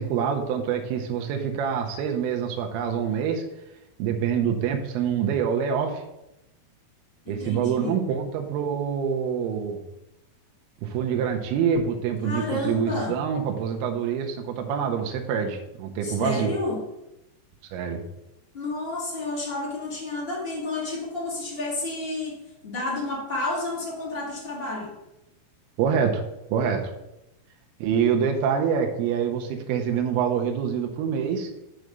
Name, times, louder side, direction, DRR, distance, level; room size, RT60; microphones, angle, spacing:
voice 1, 0.0-3.4 4.0-6.0 7.3-9.8 10.8-16.5 17.7-18.0 25.8-26.2 26.5-26.8 27.8-31.5, right 7 dB, 75° right, 3 dB, 2.6 m, -26 dB
voice 2, 7.2-8.0 12.2-13.2 16.0-16.8 18.5-22.4 22.6-24.9, left 2 dB, 25° left, -4 dB, 1.2 m, -30 dB
6.2 x 4.8 x 6.6 m, 0.89 s
omnidirectional pair, 4.8 m